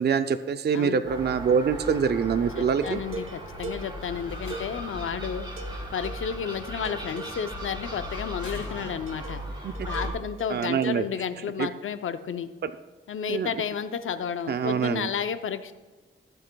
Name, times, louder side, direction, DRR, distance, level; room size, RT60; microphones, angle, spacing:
voice 1, 0.0-3.0 9.6-9.7 10.5-11.0 11.6-11.7 12.6-12.7 13.3-13.5 14.5-15.1, right 6 dB, 55° right, 9 dB, 0.4 m, -25 dB
Gull seagull, 1.0-10.1, equal, 25° right, 3.1 m, -37 dB
voice 2, 2.6-5.5 5.9-9.4 9.8-12.5 13.1-15.7, left 7 dB, 90° left, 10 dB, 0.6 m, -32 dB
sound 1, 2.8-5.2 5.6-7.8 9.1-11.0, right 4 dB, 80° right, 0.9 m, -42 dB
Slam, 4.1-5.1 6.6-7.0 8.4-9.4, left 3 dB, 75° left, 2.5 m, -47 dB
15.5 x 7.7 x 2.3 m, 1.3 s
cardioid pair, 75°, 20 cm